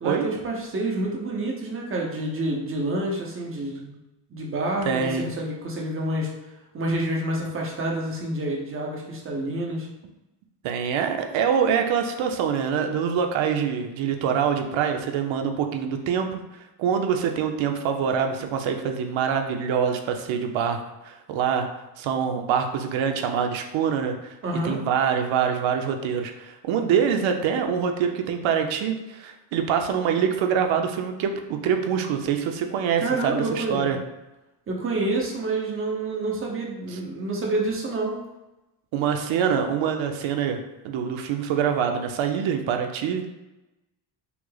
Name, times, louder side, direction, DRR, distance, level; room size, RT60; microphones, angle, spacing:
voice 1, 0.0-4.0 4.3-6.3 6.7-9.9 24.4-24.8 33.0-34.0 34.7-38.2, right 2 dB, 30° right, -2 dB, 0.9 m, -28 dB
voice 2, 4.9-5.3 10.6-16.4 16.8-21.7 22.0-24.3 24.6-34.0 36.9-37.0 38.9-40.6 40.8-43.2, right 7 dB, 85° right, 5 dB, 0.7 m, -25 dB
5.8 x 2.0 x 3.9 m, 1.0 s
cardioid pair, 150°, 46 cm